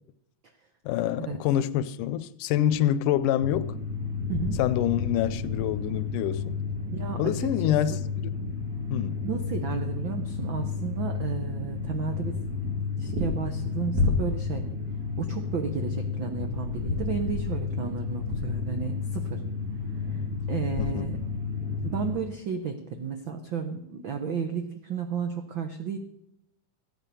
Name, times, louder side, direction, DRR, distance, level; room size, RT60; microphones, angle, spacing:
voice 1, 0.9-3.8 4.6-6.6 7.2-8.3 8.9-9.2 20.8-21.1, left 11 dB, 80° left, 2.1 m, -26 dB
sound 1, 3.4-22.1, left 4 dB, 60° right, 3.5 m, -31 dB
voice 2, 4.3-4.6 6.6-7.3 7.9-8.0 9.2-12.4 13.0-14.6 15.2-19.4 20.1-20.2 20.5-21.2 21.8-26.0, right 6 dB, 85° right, 1.0 m, -33 dB
14.5 x 9.0 x 6.8 m
omnidirectional pair, 3.7 m